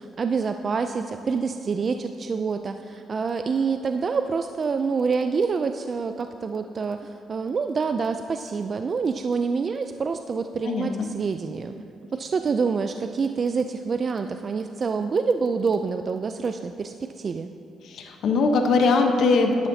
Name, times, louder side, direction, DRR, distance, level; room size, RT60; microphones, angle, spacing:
voice 1, 0.0-11.8 12.1-17.5, right 5 dB, 45° right, 7 dB, 0.3 m, -27 dB
voice 2, 10.6-11.1 17.8-19.7, left 3 dB, 70° left, 4 dB, 0.9 m, -21 dB
11.5 x 11.0 x 2.7 m, 2.8 s
cardioid pair, 90°, 0 cm